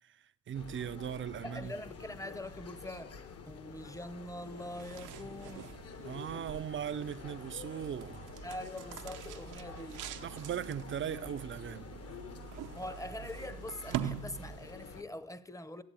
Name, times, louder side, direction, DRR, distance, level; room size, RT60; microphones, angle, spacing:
voice 1, 0.0-1.7 6.0-8.2 10.2-11.9, right 9 dB, 40° right, 0.5 m, -39 dB
sound 1, 0.5-15.0, left 5 dB, 50° left, 1.2 m, -49 dB
sound 2, 1.1-11.1, left 9 dB, 90° left, 2.6 m, -65 dB
voice 2, 1.4-5.8 8.4-10.0 12.7-15.8, left 1 dB, 10° left, 0.8 m, -44 dB
sound 3, 4.5-14.9, right 9 dB, 85° right, 0.8 m, -44 dB
14.0 x 7.8 x 9.0 m
cardioid pair, 90°, 30 cm